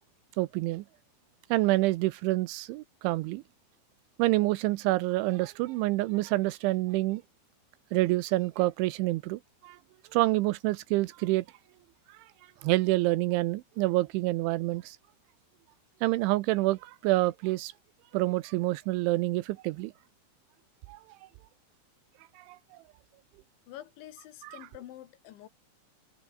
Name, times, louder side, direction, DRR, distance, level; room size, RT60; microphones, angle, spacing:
voice 1, 0.4-0.8 1.5-3.4 4.2-7.2 7.9-9.8 10.1-11.5 12.1-12.2 12.6-15.0 16.0-17.7 18.1-19.9 20.9-21.0 22.4-22.8 24.4-24.6, right 19 dB, 80° right, 3.1 m, -27 dB
voice 2, 23.7-25.5, left 13 dB, 75° left, 3.8 m, -47 dB
omnidirectional pair, 5.5 m